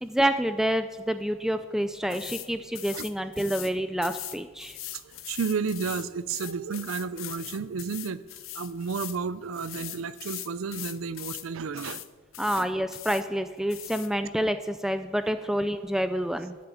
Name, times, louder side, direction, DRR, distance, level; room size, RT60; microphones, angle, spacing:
voice 1, 0.0-4.8 12.4-16.6, right 1 dB, ahead, 10 dB, 0.3 m, -28 dB
sound 1, 2.1-2.5 2.8-3.7 4.0-9.2 9.5-11.5 11.8-12.1 12.3-13.2 13.7-14.1, left 14 dB, 90° left, 0.7 m, -40 dB
voice 2, 4.9-8.2 8.5-12.0 12.5-12.7, right 5 dB, 85° right, 15 dB, 0.5 m, -32 dB
10.0 x 7.7 x 8.3 m, 1.4 s
head